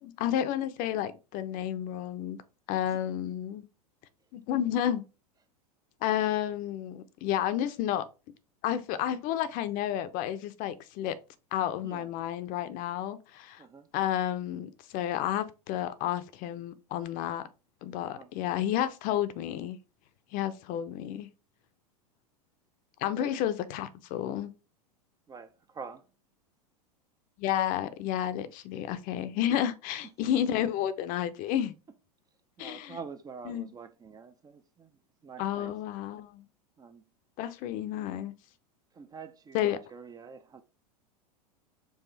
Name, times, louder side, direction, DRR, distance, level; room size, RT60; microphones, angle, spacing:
voice 1, 0.0-2.4 2.7-3.6 4.3-5.0 6.0-8.0 8.6-11.2 11.5-13.6 13.9-17.4 17.8-19.8 20.3-21.3 23.0-24.5 27.4-31.7 32.6-33.0 33.5-33.7 35.4-36.5 37.4-38.3 39.5-39.8, left 11 dB, 45° left, 0.5 m, -31 dB
voice 2, 13.6-13.9 18.0-18.3 23.2-23.4 25.3-26.1 30.0-30.1 32.6-35.7 36.8-37.0 37.7-37.8 38.9-40.6, right 5 dB, 20° right, 0.4 m, -46 dB
4.8 x 2.4 x 3.9 m
hypercardioid pair, 95°, 20 cm